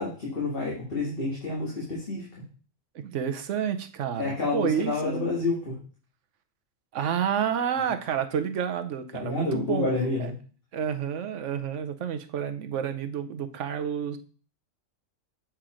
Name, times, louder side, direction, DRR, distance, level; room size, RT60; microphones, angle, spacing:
voice 1, 0.0-2.3 4.2-5.8 9.1-10.3, left 3 dB, 45° left, -5 dB, 2.2 m, -29 dB
voice 2, 2.9-5.3 6.9-9.9 10.7-14.2, right 8 dB, 70° right, 9 dB, 1.1 m, -29 dB
7.5 x 4.5 x 5.0 m, 0.40 s
omnidirectional pair, 1.3 m